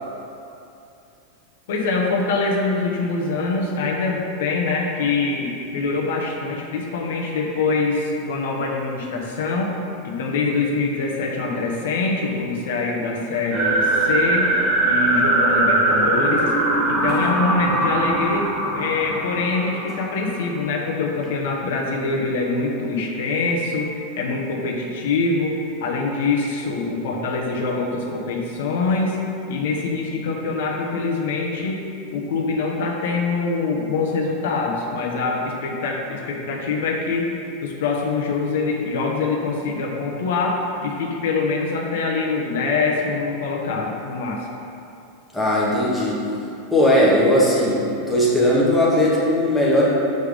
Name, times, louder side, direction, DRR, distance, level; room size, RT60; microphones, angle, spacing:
voice 1, 1.7-9.8 10.0-14.5 14.8-16.5 16.9-18.5 18.7-29.2 29.5-31.8 32.1-37.3 37.6-40.6 40.8-44.5, left 3 dB, 75° left, 0 dB, 0.9 m, -24 dB
sound 1, 13.5-20.4, right 2 dB, 35° right, 1.1 m, -21 dB
voice 2, 45.3-46.2 46.7-49.9, left 1 dB, 5° left, -7 dB, 1.1 m, -18 dB
6.5 x 3.5 x 5.1 m, 2.7 s
supercardioid pair, 165°, 0 cm